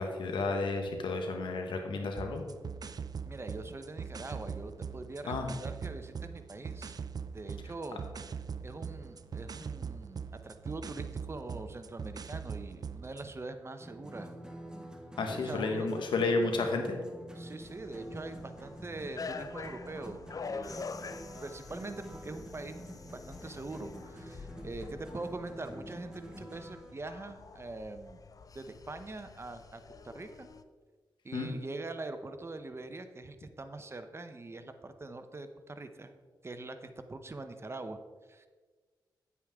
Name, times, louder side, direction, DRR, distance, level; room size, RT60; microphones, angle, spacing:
voice 1, 0.0-2.4 5.3-5.5 15.2-17.0 31.3-31.5, left 3 dB, 85° left, 4 dB, 1.3 m, -32 dB
sound 1, 2.2-13.3, right 6 dB, 55° right, 0.5 m, -41 dB
voice 2, 3.2-7.0 7.3-8.0 8.6-14.3 15.2-15.9 17.4-20.8 21.4-28.2 28.5-30.5 31.2-36.1 36.4-38.0 38.3-38.5, right 2 dB, 35° right, 8 dB, 0.9 m, -43 dB
sound 2, 13.8-26.9, right 1 dB, 10° right, 1.5 m, -48 dB
sound 3, 17.6-30.6, left 4 dB, 50° left, 0.5 m, -46 dB
9.1 x 8.3 x 3.7 m, 1.4 s
cardioid pair, 60°, 8 cm